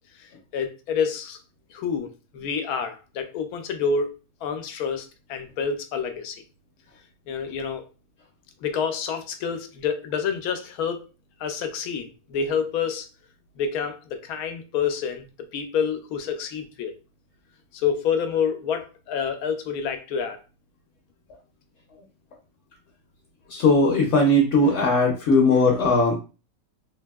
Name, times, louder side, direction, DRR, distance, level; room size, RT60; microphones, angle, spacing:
voice 1, 0.2-1.4 1.7-4.1 4.4-6.4 7.3-7.8 8.6-11.0 11.4-13.1 13.6-16.9 17.7-20.4, left 6 dB, 85° left, 7 dB, 1.1 m, -28 dB
voice 2, 23.5-26.2, left 2 dB, 65° left, 0 dB, 0.9 m, -19 dB
3.4 x 2.6 x 2.2 m, 0.32 s
omnidirectional pair, 1.5 m